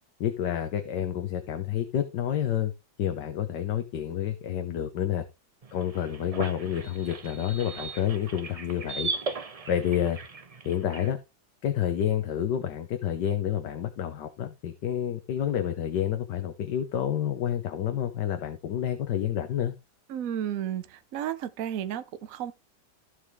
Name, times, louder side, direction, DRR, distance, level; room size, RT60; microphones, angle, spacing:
voice 1, 0.2-2.7 3.0-5.2 5.7-9.1 9.7-10.2 10.6-11.2 11.6-19.7, left 10 dB, 75° left, 1.6 m, -29 dB
sound 1, 5.6-11.1, right 4 dB, 40° right, 0.5 m, -38 dB
voice 2, 20.1-22.5, right 10 dB, 55° right, 1.1 m, -33 dB
15.0 x 5.0 x 3.6 m
omnidirectional pair, 1.9 m